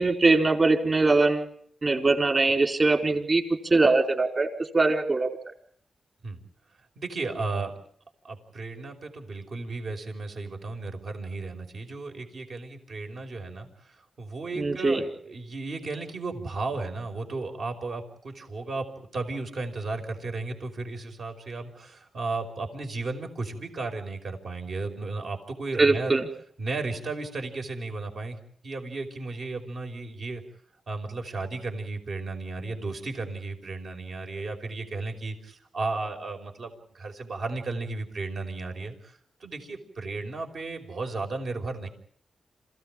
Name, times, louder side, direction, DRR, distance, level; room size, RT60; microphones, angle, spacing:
voice 1, 0.0-1.5 1.8-3.4 3.7-4.5 4.7-5.3 14.6-15.0 25.8-26.2, right 3 dB, 40° right, 4 dB, 4.5 m, -22 dB
voice 2, 6.9-7.7 8.2-26.2 26.6-28.4 28.6-30.4 30.9-41.9, right 3 dB, 65° right, 3 dB, 5.1 m, -34 dB
27.5 x 16.5 x 9.0 m, 0.64 s
cardioid pair, 80°, 0 cm